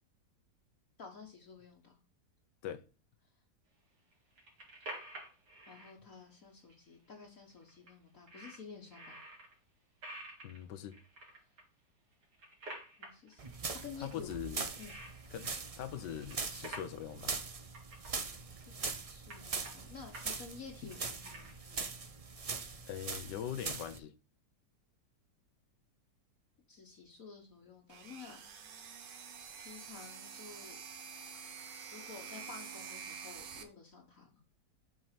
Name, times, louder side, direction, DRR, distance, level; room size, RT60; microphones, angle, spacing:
voice 1, 1.0-1.9 5.6-9.2 13.0-13.5 13.8-14.3 14.8-14.9 18.8-21.9 26.7-28.4 29.6-30.8 31.9-34.3, left 5 dB, 55° left, 1.6 m, -51 dB
sound 1, 4.1-5.9 6.7-6.8 7.0-7.1 7.5-7.9 8.3-9.5 10.0-11.6 12.1-13.8 14.1-15.7 16.0-17.0 17.3-17.4 17.6-18.1 18.6-18.9 19.3-20.3 20.6-21.8, right 1 dB, 70° right, 3.4 m, -49 dB
voice 2, 10.4-11.0 14.0-14.7 15.3-17.3 22.9-24.1, left 10 dB, 85° left, 1.4 m, -42 dB
sound 2, 13.4-24.0, right 4 dB, 55° right, 0.4 m, -42 dB
sound 3, 27.9-33.6, right 6 dB, 90° right, 1.8 m, -48 dB
8.0 x 4.7 x 5.8 m
omnidirectional pair, 1.8 m